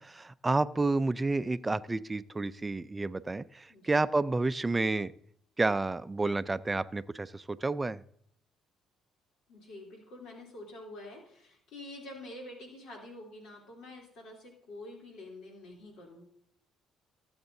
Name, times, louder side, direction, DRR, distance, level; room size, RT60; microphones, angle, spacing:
voice 1, 0.0-5.1 5.6-8.0, right 3 dB, 20° right, 14 dB, 0.4 m, -30 dB
voice 2, 9.5-16.2, left 1 dB, 80° left, -2 dB, 3.2 m, -47 dB
17.5 x 7.9 x 2.7 m, 0.69 s
cardioid pair, 90°, 0 cm